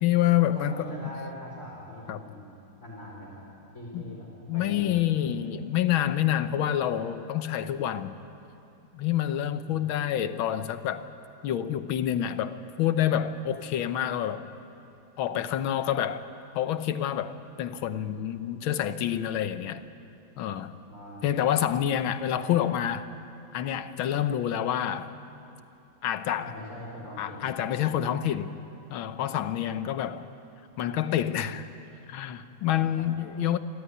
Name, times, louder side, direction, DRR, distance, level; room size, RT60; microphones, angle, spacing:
voice 1, 0.0-1.0 2.1-2.2 3.9-4.0 4.5-8.2 8.9-11.1 11.4-14.4 15.2-16.2 16.6-19.8 20.4-20.8 21.2-23.1 23.5-25.1 26.0-26.6 27.2-28.5 28.9-30.3 30.8-31.7 32.1-33.6, left 11 dB, 85° left, 11 dB, 1.7 m, -27 dB
voice 2, 0.5-2.5 2.8-3.4 3.7-5.3 9.5-9.8 20.9-21.3 26.4-27.4 27.7-27.8 33.0-33.1, left 1 dB, 35° left, -5 dB, 4.5 m, -42 dB
28.5 x 12.5 x 9.8 m, 2.9 s
omnidirectional pair, 2.2 m